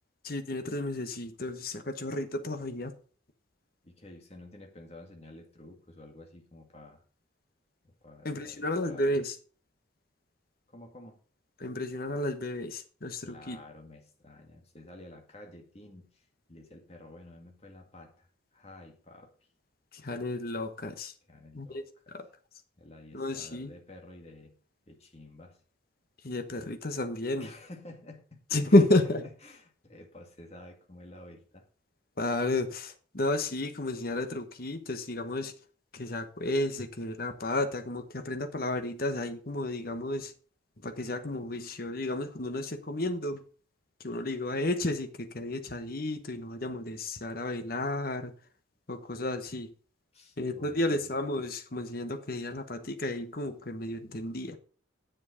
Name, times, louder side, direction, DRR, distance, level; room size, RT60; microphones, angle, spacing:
voice 1, 0.2-2.9 8.2-9.3 11.6-13.6 19.9-21.1 21.5-21.8 22.1-22.3 23.1-23.7 26.2-27.5 28.5-29.2 32.2-35.5 35.9-40.3 40.8-43.4 44.0-48.3 48.9-49.7 50.4-54.6, left 2 dB, 50° left, 1.2 m, -31 dB
voice 2, 3.8-7.0 7.8-9.2 10.7-11.2 13.2-19.3 21.3-21.9 22.8-24.6 24.9-25.6 27.4-28.4 28.8-28.9 29.4-31.7 50.1-51.1, left 1 dB, 35° left, 2.1 m, -50 dB
10.0 x 7.4 x 5.1 m
head